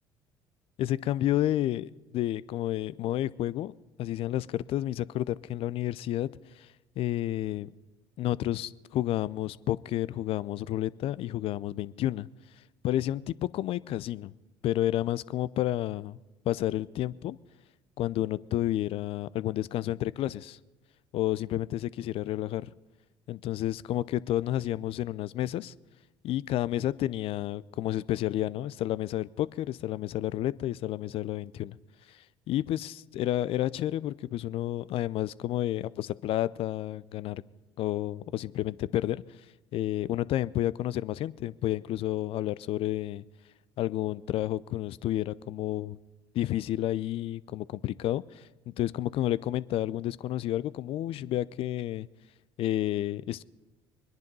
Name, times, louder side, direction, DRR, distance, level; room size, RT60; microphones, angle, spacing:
voice 1, 0.8-3.7 4.0-6.3 6.6-6.7 7.0-7.7 8.2-12.3 12.8-14.3 14.6-16.2 16.4-17.4 18.0-20.6 21.1-22.7 23.3-25.7 26.2-31.8 32.5-37.4 37.8-39.2 39.7-43.2 43.8-46.0 46.3-48.2 48.7-52.1 52.6-53.4, left 13 dB, 60° left, 19 dB, 0.5 m, -30 dB
22.0 x 10.5 x 5.4 m, 1.2 s
hypercardioid pair, 60°, 11 cm